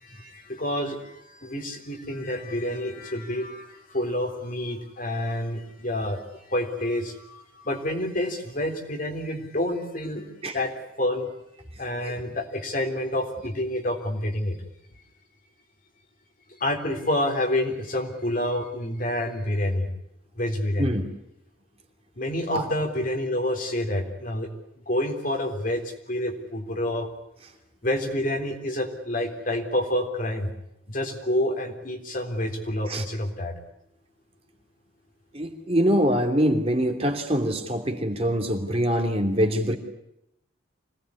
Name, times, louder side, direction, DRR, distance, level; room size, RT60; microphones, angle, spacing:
voice 1, 0.0-10.7 11.0-11.3 11.8-14.6 16.6-19.9 20.4-21.0 22.2-24.5 24.9-27.1 27.8-30.5 30.9-33.5, left 1 dB, 40° left, 4 dB, 3.7 m, -28 dB
voice 2, 35.3-39.8, equal, 30° right, 4 dB, 2.8 m, -24 dB
26.0 x 18.5 x 9.8 m, 0.81 s
head